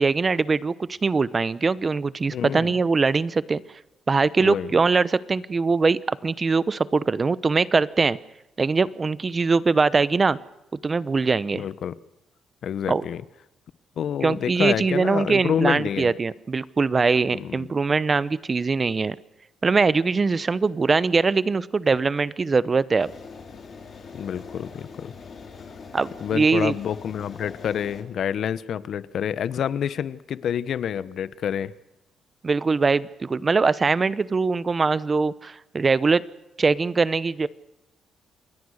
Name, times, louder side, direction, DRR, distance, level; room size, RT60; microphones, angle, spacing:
voice 1, 0.0-3.6 4.1-8.2 8.6-10.4 10.8-11.7 12.9-13.0 14.2-19.2 19.6-23.1 25.9-26.7 32.4-36.2 36.6-37.5, right 4 dB, 30° right, 17 dB, 0.9 m, -22 dB
voice 2, 2.3-2.8 4.4-4.7 11.5-12.0 12.6-13.2 14.0-16.1 17.3-17.7 24.1-25.1 26.2-31.7, left 8 dB, 65° left, 16 dB, 1.0 m, -28 dB
sound 1, 23.0-28.0, left 5 dB, 45° left, 5.7 m, -42 dB
28.0 x 21.0 x 6.6 m, 0.92 s
cardioid pair, 90°, 0 cm